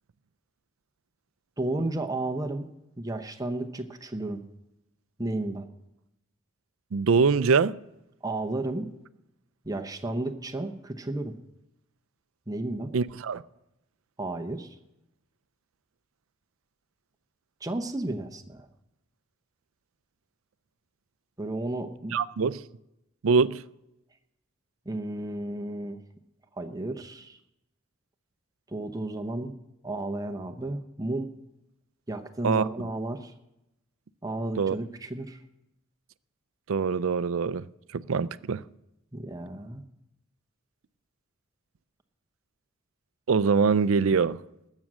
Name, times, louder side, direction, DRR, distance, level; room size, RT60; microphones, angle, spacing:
voice 1, 1.6-2.7 3.0-4.4 5.2-5.7 8.2-8.9 9.6-11.4 12.5-12.9 14.2-14.8 17.6-18.7 21.4-22.2 24.9-26.0 26.6-27.4 28.7-29.6 29.8-31.3 32.1-33.3 34.2-35.4 39.1-39.8, right 2 dB, 15° right, 0.7 m, -33 dB
voice 2, 6.9-7.8 12.9-13.4 22.1-22.6 23.2-23.6 32.4-32.7 34.6-34.8 36.7-37.7 37.9-38.6 43.3-44.4, right 5 dB, 75° right, 0.4 m, -23 dB
20.0 x 7.5 x 6.2 m
head